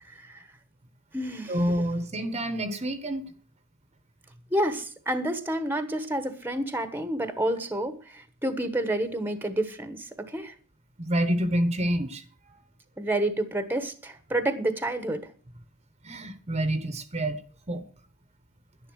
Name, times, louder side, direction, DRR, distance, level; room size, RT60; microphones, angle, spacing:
voice 1, 0.1-0.4 1.1-1.6 4.5-10.5 13.0-15.2, right 1 dB, 10° right, 10 dB, 1.2 m, -29 dB
voice 2, 1.5-3.3 11.0-12.6 16.0-17.4 17.7-17.8, right 1 dB, 30° right, 10 dB, 1.1 m, -28 dB
11.0 x 10.5 x 6.2 m, 0.41 s
head